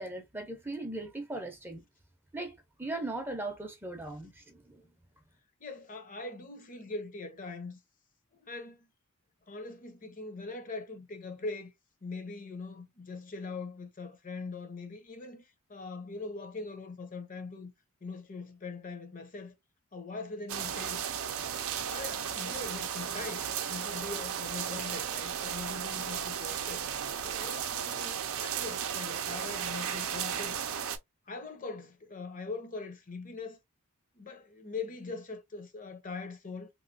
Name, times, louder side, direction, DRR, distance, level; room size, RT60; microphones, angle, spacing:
voice 1, 0.0-1.8 2.3-2.5 2.8-4.7, right 2 dB, 10° right, 0.6 m, -38 dB
voice 2, 5.6-7.8 8.3-8.9 9.5-11.7 12.0-17.7 18.0-19.5 19.9-21.0 21.6-26.8 27.2-30.6 31.3-33.6 34.1-36.7, left 3 dB, 40° left, 0.7 m, -42 dB
sound 1, 20.5-31.0, right 8 dB, 70° right, 0.5 m, -35 dB
3.0 x 2.8 x 2.5 m
head